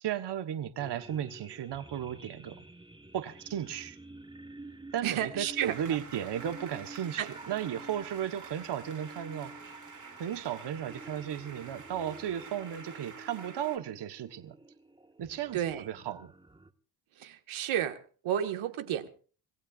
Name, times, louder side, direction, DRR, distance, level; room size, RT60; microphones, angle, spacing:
voice 1, 0.0-2.6 3.1-4.0 4.9-9.5 10.2-14.5 15.2-15.6 15.9-16.3, right 10 dB, 55° right, 8 dB, 1.3 m, -35 dB
sound 1, 0.8-16.7, right 2 dB, 10° right, 1.4 m, -50 dB
voice 2, 5.0-5.8 7.2-7.3 15.5-15.9 17.2-19.1, right 10 dB, 75° right, 6 dB, 1.9 m, -32 dB
sound 2, 5.6-13.8, right 5 dB, 35° right, 2.8 m, -49 dB
26.5 x 16.0 x 2.5 m, 0.38 s
supercardioid pair, 70°, 49 cm